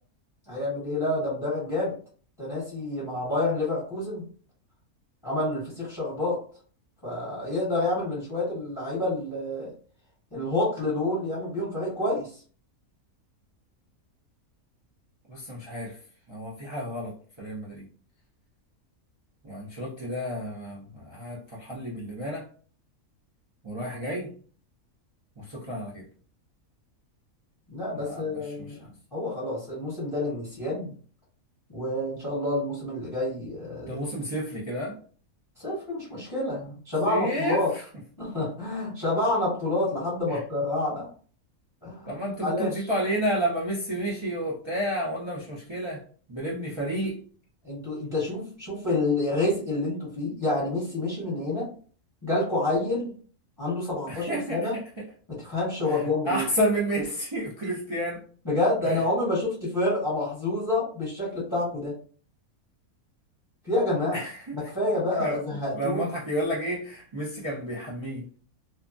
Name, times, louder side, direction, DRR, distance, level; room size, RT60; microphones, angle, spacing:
voice 1, 0.5-1.9 2.4-4.3 5.2-6.4 7.0-9.7 10.3-12.3 27.7-28.8 29.1-30.9 31.7-34.0 35.6-37.7 38.2-41.1 41.8-42.1 42.4-42.9 47.6-51.7 52.2-53.1 53.6-54.8 55.3-56.5 58.4-61.9 63.6-64.2 64.5-66.1, left 2 dB, 15° left, -7 dB, 1.1 m, -28 dB
voice 2, 15.3-15.9 16.3-17.1 17.4-17.8 19.4-22.4 23.6-24.3 25.4-26.0 27.9-28.2 28.6-28.8 33.9-34.9 37.0-37.6 40.3-40.4 42.1-46.0 46.3-47.2 54.1-54.8 55.9-56.0 56.2-58.2 58.9-59.0 64.1-64.4 65.2-65.4 65.7-68.2, right 1 dB, 40° right, -6 dB, 0.4 m, -30 dB
2.8 x 2.2 x 2.5 m, 0.43 s
omnidirectional pair, 1.5 m